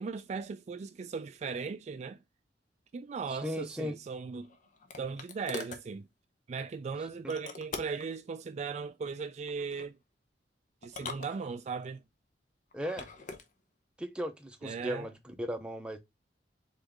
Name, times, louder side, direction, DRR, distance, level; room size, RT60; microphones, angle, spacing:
voice 1, 0.0-2.2 2.9-4.5 5.0-6.1 6.5-10.0 10.8-12.0 14.6-15.1, right 5 dB, 40° right, 0.3 m, -37 dB
voice 2, 3.3-3.9 7.2-7.3 12.7-13.1 14.0-16.0, equal, 5° right, 0.6 m, -37 dB
sound 1, 4.1-5.9 7.3-8.1 9.5-9.9 10.8-11.9 12.7-13.5, left 4 dB, 45° left, 0.8 m, -44 dB
3.9 x 3.6 x 3.5 m
head